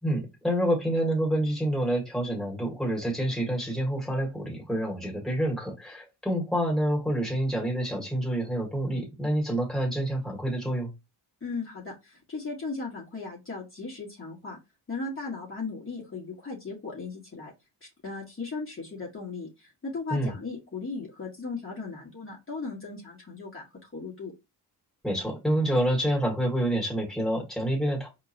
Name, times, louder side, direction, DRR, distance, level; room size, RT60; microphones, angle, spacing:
voice 1, 0.0-10.9 20.1-20.3 25.0-28.1, right 1 dB, ahead, -1 dB, 1.9 m, -27 dB
voice 2, 11.4-14.6 14.9-17.5 18.0-23.6 23.9-24.3, left 4 dB, 30° left, -4 dB, 1.5 m, -37 dB
4.4 x 3.1 x 2.6 m, 0.25 s
cardioid pair, 70°, 43 cm